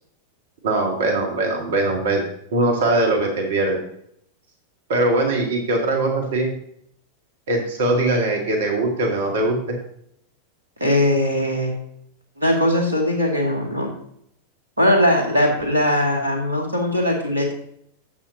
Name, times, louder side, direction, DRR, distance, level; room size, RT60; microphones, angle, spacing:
voice 1, 0.6-2.2 2.5-3.8 4.9-6.5 7.5-9.8, right 2 dB, 60° right, 3 dB, 1.8 m, -21 dB
voice 2, 10.8-11.8 12.4-13.9 14.8-17.5, left 1 dB, 80° right, 1 dB, 2.2 m, -20 dB
11.0 x 7.9 x 2.7 m, 0.69 s
figure-of-eight pair, 90°, 0 cm